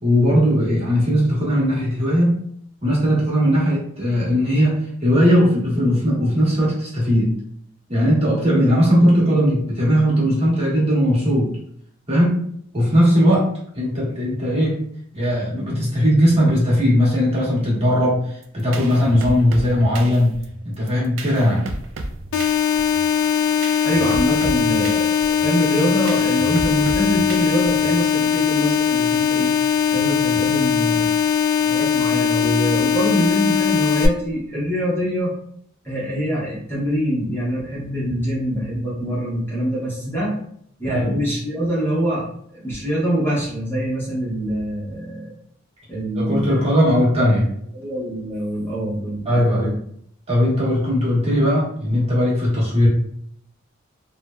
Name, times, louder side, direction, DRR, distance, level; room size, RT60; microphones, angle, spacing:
voice 1, 0.0-2.4 2.8-7.3 7.9-11.5 12.1-12.4 12.7-13.5 13.7-14.8 15.1-20.4 20.6-21.7 40.8-41.2 46.2-47.5 49.2-49.7 50.3-52.9, equal, 30° right, -7 dB, 1.1 m, -18 dB
sound 1, 18.4-28.1, right 2 dB, 70° right, 0.3 m, -34 dB
sound 2, 22.3-34.1, left 8 dB, 85° left, 0.4 m, -20 dB
voice 2, 23.8-29.5 29.9-31.1 31.6-35.3 35.8-40.4 40.8-45.3 45.9-46.5 47.7-49.3 49.6-49.7, equal, 10° left, -8 dB, 0.7 m, -24 dB
3.2 x 2.1 x 2.2 m, 0.67 s
head